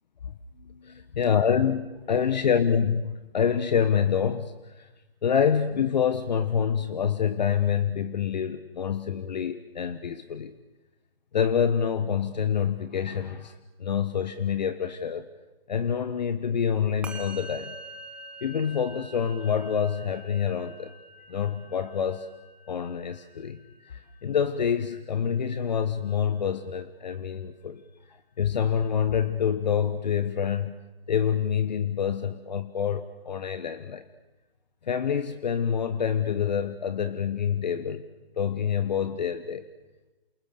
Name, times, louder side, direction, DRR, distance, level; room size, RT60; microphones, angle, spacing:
voice 1, 0.6-4.9 5.2-10.5 11.3-13.5 13.8-15.3 15.7-17.7 18.4-20.9 21.3-22.3 22.7-23.6 23.8-27.8 28.1-30.7 31.1-34.0 34.8-38.0 38.4-39.7, left 7 dB, 45° left, 12 dB, 1.3 m, -27 dB
Musical instrument, 17.0-26.6, right 1 dB, 5° right, 1.5 m, -46 dB
28.0 x 28.0 x 6.8 m, 1.1 s
hypercardioid pair, 155°, 31 cm